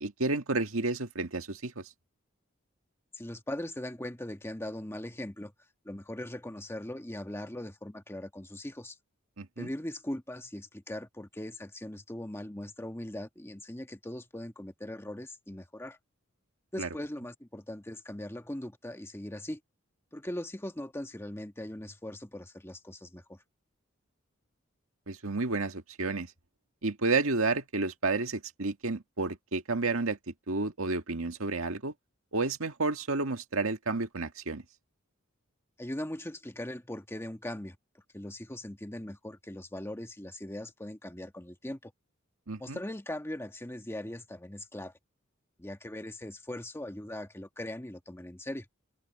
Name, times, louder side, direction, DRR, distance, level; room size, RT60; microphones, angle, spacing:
voice 1, 0.0-1.8 9.4-9.7 16.8-16.9 25.1-26.3 26.8-31.9 32.3-34.6 42.5-42.8, right 3 dB, 85° right, 1.8 m, -31 dB
voice 2, 3.1-5.5 5.8-9.0 9.6-16.0 16.7-19.6 20.1-23.4 35.8-37.8 38.1-41.9 42.6-44.9 45.6-48.6, left 1 dB, 10° left, 1.4 m, -40 dB
head